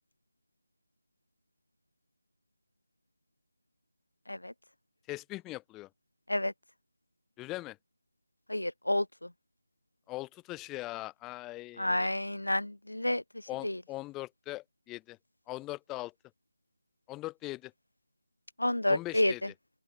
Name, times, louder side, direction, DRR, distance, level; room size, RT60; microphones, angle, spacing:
voice 1, 5.1-5.9 7.4-7.8 10.1-12.1 13.5-15.2 15.5-16.1 17.1-17.7 18.9-19.5, left 19 dB, 10° left, 4.4 m, -40 dB
voice 2, 8.5-9.3 11.8-13.2 13.6-13.8 18.6-19.3, left 1 dB, 80° left, 4.0 m, -29 dB
open air
figure-of-eight pair, 160°, 0 cm